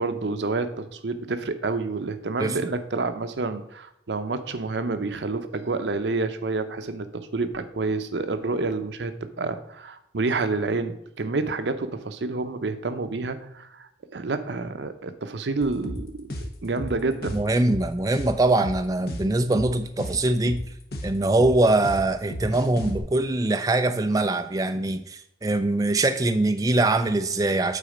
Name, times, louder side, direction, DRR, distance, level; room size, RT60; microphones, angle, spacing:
voice 1, 0.0-17.4, right 3 dB, 80° right, 0.7 m, -29 dB
sound 1, 15.6-23.0, equal, 60° left, 1.0 m, -34 dB
voice 2, 17.3-20.6 21.0-27.8, right 2 dB, 20° right, 0.4 m, -23 dB
8.3 x 4.3 x 5.0 m
head